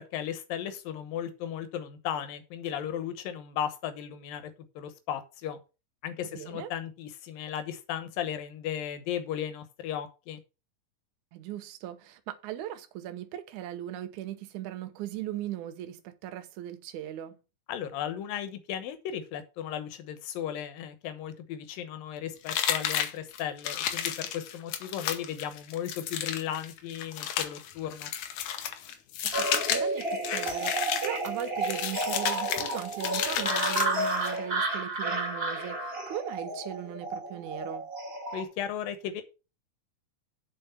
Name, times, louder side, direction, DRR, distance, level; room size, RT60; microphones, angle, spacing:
voice 1, 0.0-5.6 6.0-10.4 17.7-28.1 38.3-39.2, left 9 dB, 85° left, 2.9 m, -36 dB
voice 2, 6.3-6.7 11.3-17.4 29.2-37.8, right 12 dB, 70° right, 2.3 m, -39 dB
sound 1, 22.5-34.4, left 10 dB, 70° left, 2.3 m, -32 dB
sound 2, 29.3-38.4, right 2 dB, 20° right, 1.8 m, -31 dB
7.6 x 6.3 x 5.8 m
omnidirectional pair, 3.9 m